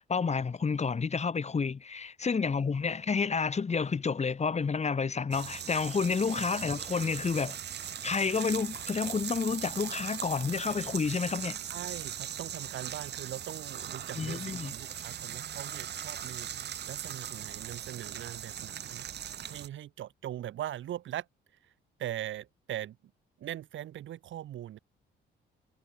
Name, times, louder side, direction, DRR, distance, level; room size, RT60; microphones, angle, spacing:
voice 1, 0.0-11.6 14.2-14.7, left 5 dB, 35° left, 2.3 m, -30 dB
sound 1, 5.3-19.7, right 9 dB, 60° right, 1.7 m, -39 dB
voice 2, 11.7-19.0 19.5-21.3 21.6-21.7 22.0-23.0 23.4-24.8, right 12 dB, 75° right, 4.5 m, -41 dB
cardioid pair, 90°, 20 cm